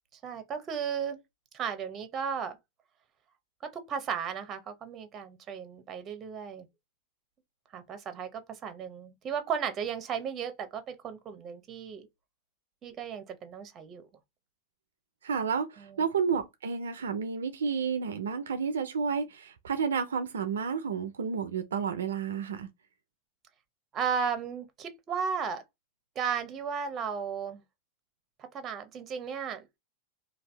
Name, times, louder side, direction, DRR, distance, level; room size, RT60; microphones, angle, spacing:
voice 1, 0.2-1.2 1.5-2.6 3.9-6.7 7.7-12.1 12.8-14.1 15.8-16.0 23.9-25.6 26.2-27.6 28.5-29.7, right 7 dB, 35° right, 0.7 m, -35 dB
voice 2, 15.2-22.7, right 6 dB, 85° right, 0.4 m, -31 dB
2.6 x 2.3 x 3.2 m
hypercardioid pair, 100°, 0 cm